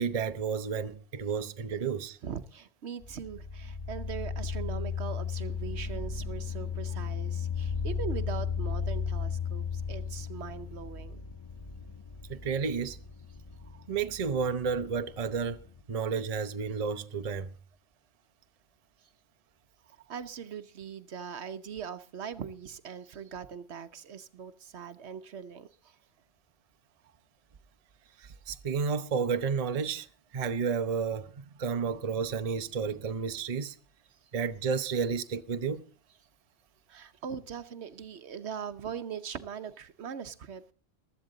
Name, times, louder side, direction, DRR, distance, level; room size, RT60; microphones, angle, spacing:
voice 1, 0.0-2.2 12.3-13.0 13.9-17.5 28.2-30.1 30.3-33.8 34.3-35.8, right 6 dB, 35° right, 0.7 m, -31 dB
voice 2, 2.2-11.2 20.1-26.0 34.1-34.2 36.9-40.7, right 7 dB, 65° right, 1.1 m, -41 dB
sound 1, 3.0-15.8, left 6 dB, 25° left, 0.7 m, -35 dB
15.5 x 13.0 x 3.9 m
omnidirectional pair, 1.3 m